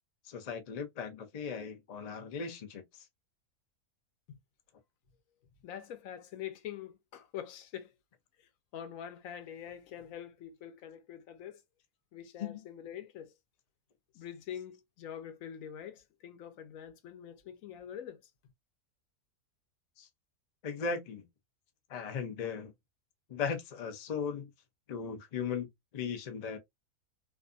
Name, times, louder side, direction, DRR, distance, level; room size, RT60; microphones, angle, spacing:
voice 1, 0.3-2.8 12.4-12.6 20.0-20.1 20.6-21.2 21.9-22.7 23.3-24.5 24.9-25.7 25.9-26.6, left 6 dB, 85° left, 0.3 m, -37 dB
voice 2, 5.6-7.9 8.4-11.6 12.1-13.3 14.1-18.2, left 9 dB, 70° left, 1.0 m, -45 dB
2.6 x 2.4 x 2.4 m
omnidirectional pair, 1.5 m